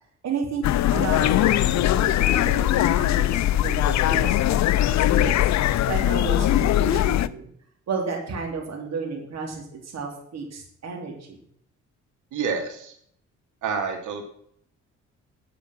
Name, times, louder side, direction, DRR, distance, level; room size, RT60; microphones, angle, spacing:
voice 1, 0.2-0.6 0.9-4.6 4.9-7.5 7.9-11.4, right 4 dB, 60° right, 0 dB, 3.3 m, -32 dB
sound 1, 0.6-7.3, left 13 dB, 65° left, 0.6 m, -21 dB
voice 2, 12.3-12.9 13.6-14.3, right 5 dB, 85° right, 4 dB, 2.8 m, -28 dB
8.9 x 8.7 x 6.0 m, 0.65 s
cardioid pair, 90°, 30 cm